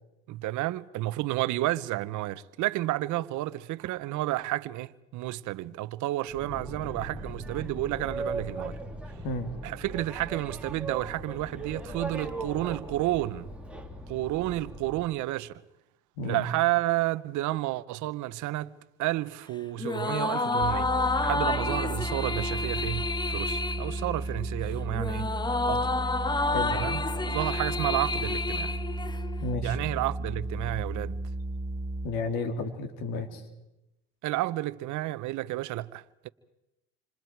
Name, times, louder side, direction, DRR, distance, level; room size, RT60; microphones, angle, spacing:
voice 1, 0.3-8.8 9.6-13.5 14.1-15.6 16.2-18.7 19.0-20.9 21.2-25.3 25.7-25.9 26.7-28.8 29.6-31.2 34.2-36.3, right 17 dB, 60° right, 0.9 m, -31 dB
Boat Water vehicle, 6.3-15.1, right 2 dB, 5° right, 2.6 m, -38 dB
sound 1, 19.8-29.5, left 3 dB, 10° left, 0.8 m, -30 dB
sound 2, 20.6-32.1, right 2 dB, 20° right, 1.0 m, -34 dB
voice 2, 29.4-29.8 32.0-33.4, left 2 dB, 75° left, 3.2 m, -32 dB
28.0 x 26.0 x 4.6 m
supercardioid pair, 95°, 34 cm